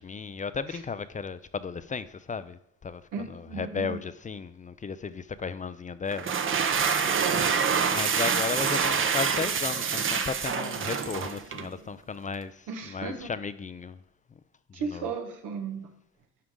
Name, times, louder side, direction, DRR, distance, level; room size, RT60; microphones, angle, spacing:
voice 1, 0.0-6.3 7.9-14.0 14.7-15.2, left 5 dB, 25° left, 0.4 m, -35 dB
voice 2, 3.1-4.0 7.0-7.6 12.7-13.3 14.7-15.9, right 5 dB, 90° right, 1.4 m, -35 dB
sound 1, 6.1-11.7, right 6 dB, 40° right, 0.8 m, -26 dB
11.5 x 4.8 x 3.7 m
cardioid pair, 90°, 30 cm